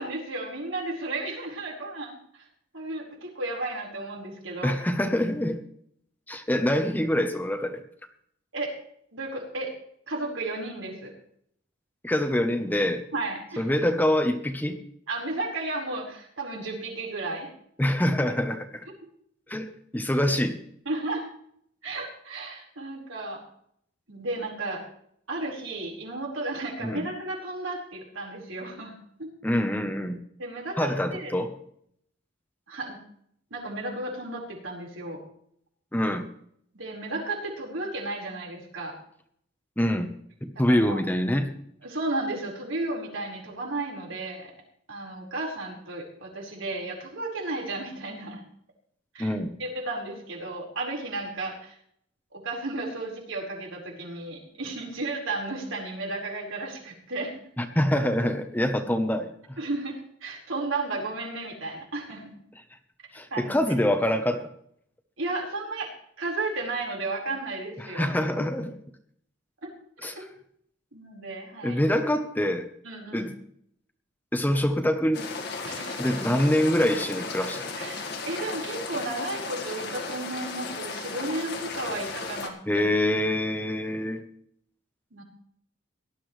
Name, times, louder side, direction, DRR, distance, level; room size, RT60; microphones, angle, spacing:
voice 1, 0.0-2.1 2.7-4.8 8.5-8.7 9.1-9.7 10.1-11.1 13.1-13.6 15.1-17.5 20.8-21.2 21.8-23.4 24.1-24.8 25.3-28.9 29.2-29.3 30.4-31.3 32.7-33.0 33.5-35.2 36.7-38.9 40.7-41.0 41.8-44.5 44.9-48.4 49.1-49.3 49.6-51.8 52.3-57.4 59.6-62.4 63.3-63.5 65.2-65.9 66.2-68.1 69.6-69.7 70.0-70.2 70.9-71.8 72.8-73.3 75.6-76.2 77.8-82.8 85.1-85.2, right 2 dB, 80° right, -1 dB, 4.7 m, -33 dB
voice 2, 4.6-5.6 6.3-7.8 12.0-13.0 13.6-14.8 17.8-18.9 19.5-20.6 26.8-27.0 29.4-30.2 30.8-31.5 35.9-36.3 39.8-40.1 40.4-41.5 49.2-49.5 57.6-59.3 63.1-64.5 67.8-68.7 70.0-70.2 71.6-72.7 73.1-73.3 74.3-75.2 76.0-77.7 82.7-84.2, left 1 dB, 10° left, 7 dB, 0.9 m, -25 dB
sound 1, 75.1-82.5, left 4 dB, 55° left, 1.8 m, -35 dB
18.0 x 12.0 x 3.3 m, 0.68 s
head